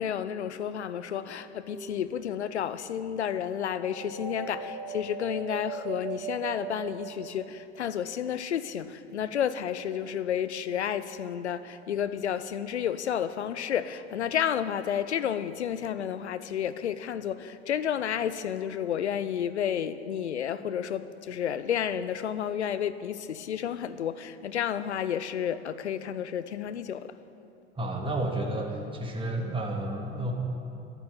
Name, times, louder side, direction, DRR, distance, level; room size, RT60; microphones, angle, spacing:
voice 1, 0.0-27.1, left 9 dB, 85° left, 0.6 m, -31 dB
sound 1, 1.6-2.4 3.8-7.6, right 6 dB, ahead, 3.6 m, -39 dB
voice 2, 27.8-30.3, right 1 dB, 15° right, 2.0 m, -31 dB
12.0 x 8.9 x 8.6 m
figure-of-eight pair, 75°, 33 cm